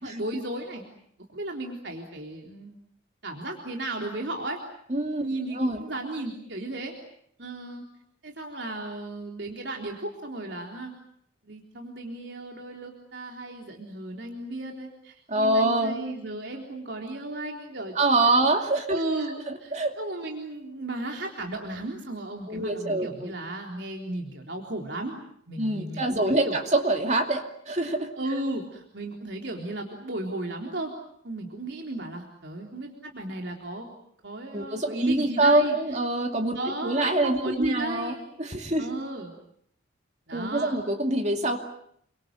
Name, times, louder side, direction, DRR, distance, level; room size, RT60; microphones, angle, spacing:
voice 1, 0.0-0.8 1.3-2.7 3.2-4.6 5.2-6.9 7.4-7.8 8.2-10.9 11.4-17.9 18.2-18.4 18.9-19.4 20.0-25.2 25.5-26.6 28.2-30.9 31.2-33.9 34.2-36.0 36.5-38.2 38.8-39.3 40.3-40.8, right 2 dB, 65° right, 1 dB, 3.8 m, -35 dB
voice 2, 4.9-5.3 5.5-5.8 15.3-16.0 18.0-19.0 19.5-20.0 22.5-23.3 25.6-28.1 34.5-36.6 36.8-38.1 38.4-38.9 40.3-41.6, right 2 dB, 35° right, 4 dB, 2.5 m, -25 dB
29.5 x 24.5 x 7.6 m, 0.68 s
head